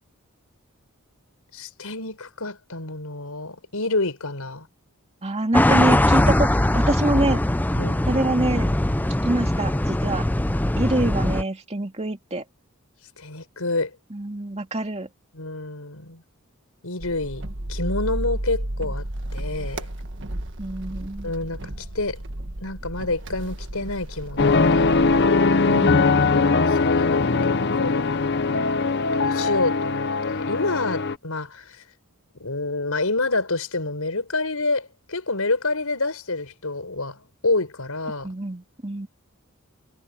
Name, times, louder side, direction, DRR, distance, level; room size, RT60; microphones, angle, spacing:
voice 1, 1.5-4.7 7.7-8.0 13.2-13.9 15.3-16.2 16.8-19.1 19.3-19.9 21.2-21.6 21.9-22.2 22.6-24.9 26.3-28.0 29.1-31.8 32.4-38.3, left 2 dB, 80° left, 4.9 m, -28 dB
voice 2, 5.2-6.5 6.7-7.4 8.1-8.7 9.2-10.2 10.8-12.4 14.1-15.1 20.6-21.3 38.2-39.1, right 1 dB, 30° right, 2.4 m, -26 dB
sound 1, 5.5-11.4, left 1 dB, 10° left, 0.5 m, -21 dB
sound 2, 17.0-25.3, right 1 dB, 55° right, 1.5 m, -33 dB
sound 3, 24.4-31.2, left 4 dB, 50° left, 0.9 m, -20 dB
head